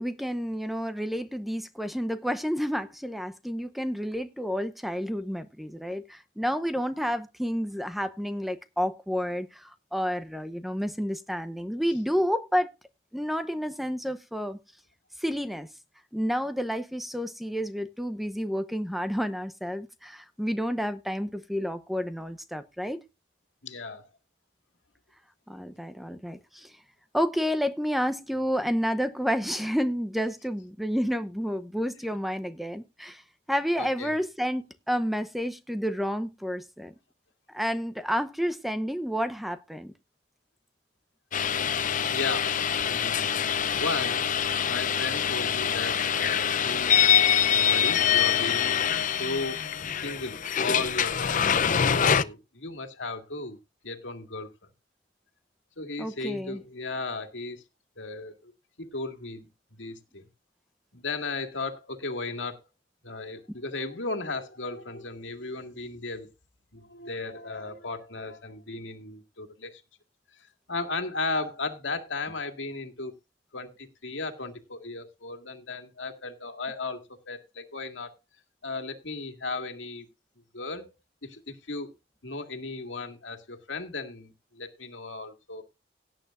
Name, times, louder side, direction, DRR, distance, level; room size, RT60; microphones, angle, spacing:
voice 1, 0.0-12.7 13.1-14.6 15.2-15.7 16.1-23.0 25.5-26.7 27.1-33.2 33.5-36.9 37.5-39.9 56.0-56.6, equal, ahead, 0.8 m, -30 dB
voice 2, 23.6-24.0 33.8-34.1 42.1-42.6 42.9-43.5 43.7-46.9 47.5-48.8 49.1-49.6 49.9-51.5 51.8-53.6 53.8-54.5 55.8-57.6 58.0-58.5 58.8-59.5 59.8-60.2 60.9-62.6 63.0-66.3 66.7-69.8 70.7-73.1 73.5-78.1 78.6-80.1 80.5-80.9 81.2-81.9 82.2-85.6, left 3 dB, 80° left, 2.1 m, -35 dB
sound 1, 41.3-52.2, left 8 dB, 45° left, 0.6 m, -25 dB
17.5 x 9.1 x 2.5 m
head